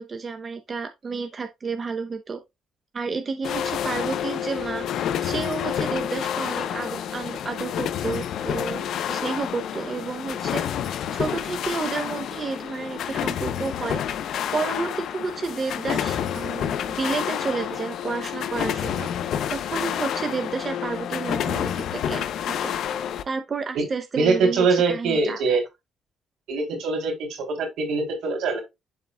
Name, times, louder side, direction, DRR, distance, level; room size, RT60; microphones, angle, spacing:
voice 1, 0.0-2.4 2.9-10.6 11.1-14.2 14.5-19.1 19.5-22.8 23.3-25.6, right 4 dB, 40° right, 0.8 m, -31 dB
sound 1, 3.4-23.2, left 9 dB, 75° left, 0.5 m, -29 dB
voice 2, 24.2-25.6 26.5-28.6, right 4 dB, 85° right, 3.0 m, -23 dB
11.5 x 4.0 x 2.2 m
cardioid pair, 90°, 0 cm